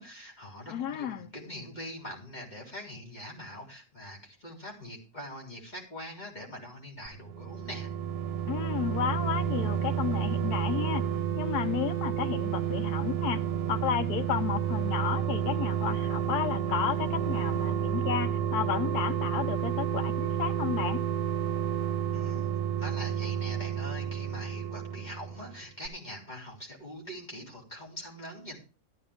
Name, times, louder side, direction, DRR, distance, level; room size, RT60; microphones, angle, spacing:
voice 1, 0.0-7.9 22.1-22.5 22.8-28.6, equal, 25° left, 4.0 m, -43 dB
voice 2, 0.7-1.3 8.5-11.0 11.3-13.4 13.7-21.0, left 9 dB, 80° left, 1.3 m, -32 dB
sound 1, 7.1-25.6 25.9-26.0, right 9 dB, 75° right, 1.3 m, -30 dB
13.5 x 11.5 x 3.5 m
omnidirectional pair, 1.7 m